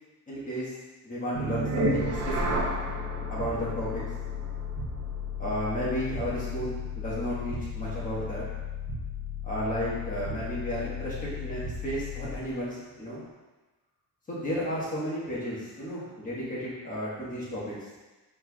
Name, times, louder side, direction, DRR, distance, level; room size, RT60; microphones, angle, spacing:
voice 1, 0.3-0.7 1.0-2.6 3.3-4.0 5.4-8.4 9.4-13.2 14.3-17.8, equal, 20° left, -8 dB, 1.3 m, -33 dB
sound 1, 1.3-12.5, left 2 dB, 40° right, 0.7 m, -33 dB
4.4 x 4.3 x 2.3 m, 1.2 s
cardioid pair, 165°, 38 cm